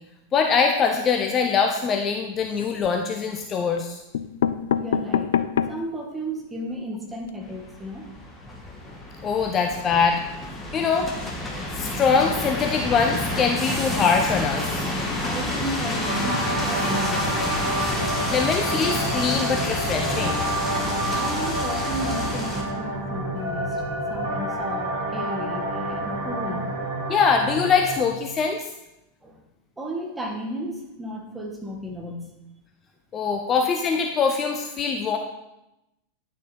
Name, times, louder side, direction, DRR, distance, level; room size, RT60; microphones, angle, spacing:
voice 1, 0.3-4.0 9.2-10.2 10.7-11.1 11.8-14.9 18.3-20.4 27.1-28.6 33.1-35.2, left 5 dB, 25° left, 4 dB, 0.7 m, -23 dB
sound 1, 2.4-3.0 3.8-3.9 4.1-5.9 6.4-6.5 6.7-6.8 7.1-7.3, left 8 dB, 60° left, 0.3 m, -26 dB
voice 2, 4.8-5.3 5.7-8.3 15.2-17.5 21.1-23.8 24.1-26.7 29.2-29.4 29.8-32.2, equal, 10° right, 0 dB, 1.6 m, -34 dB
sound 2, 7.4-22.6, left 1 dB, 10° left, 1.8 m, -29 dB
sound 3, 16.0-28.0, right 1 dB, 55° right, 3.4 m, -29 dB
10.0 x 6.2 x 4.2 m, 0.92 s
figure-of-eight pair, 90°, 0 cm